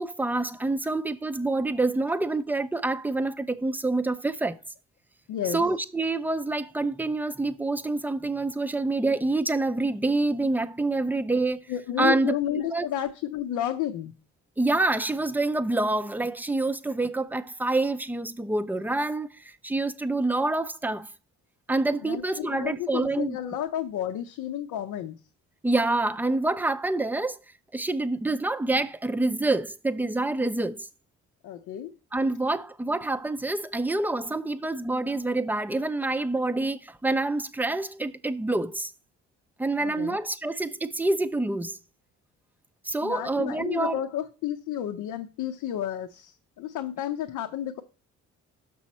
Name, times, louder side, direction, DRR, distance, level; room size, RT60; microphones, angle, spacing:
voice 1, 0.0-4.6 5.5-11.7 12.0-12.3 12.7-12.9 14.6-21.1 21.7-23.4 25.6-27.4 27.7-30.9 32.1-38.9 39.6-41.8 42.8-44.0, right 2 dB, 5° right, 0.5 m, -27 dB
voice 2, 5.3-5.6 11.7-14.1 22.0-25.2 31.4-31.9 39.8-40.2 43.0-47.8, left 11 dB, 85° left, 0.6 m, -31 dB
6.2 x 6.1 x 4.2 m
cardioid pair, 90°, 30 cm